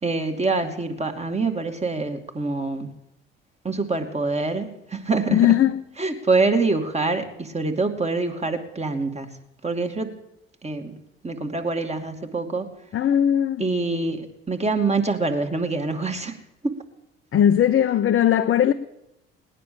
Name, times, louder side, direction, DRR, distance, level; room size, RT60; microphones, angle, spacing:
voice 1, 0.0-3.0 3.6-5.6 6.0-9.3 9.6-10.1 10.6-12.7 13.6-16.4 16.6-16.7, right 3 dB, 20° right, 2.5 m, -25 dB
voice 2, 5.3-5.7 12.9-13.6 17.3-18.7, left 10 dB, 40° left, 0.9 m, -18 dB
18.5 x 10.0 x 7.1 m
hypercardioid pair, 55°, 31 cm